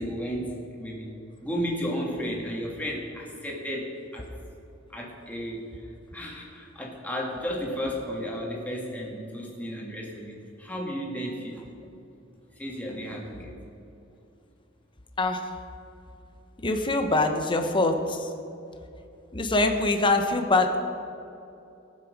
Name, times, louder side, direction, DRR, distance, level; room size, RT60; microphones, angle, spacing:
voice 1, 0.0-4.3 4.9-11.7 12.6-13.5, equal, 10° left, -2 dB, 2.1 m, -33 dB
voice 2, 15.2-15.5 16.6-18.3 19.3-20.8, left 2 dB, 25° left, 5 dB, 0.9 m, -24 dB
17.5 x 7.6 x 5.2 m, 2.8 s
head